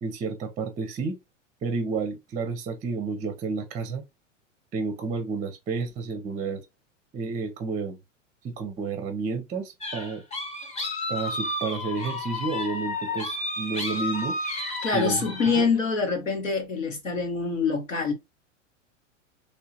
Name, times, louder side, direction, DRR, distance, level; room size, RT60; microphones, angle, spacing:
voice 1, 0.0-1.2 1.6-4.0 4.7-6.6 7.1-8.0 8.4-10.2 11.1-14.4 14.9-15.2 15.5-15.7, right 4 dB, 20° right, 0.5 m, -31 dB
sound 1, 9.8-15.6, left 2 dB, 15° left, 1.0 m, -32 dB
voice 2, 14.8-18.1, left 4 dB, 85° left, 1.3 m, -25 dB
3.2 x 2.7 x 2.7 m
hypercardioid pair, 95°, 38 cm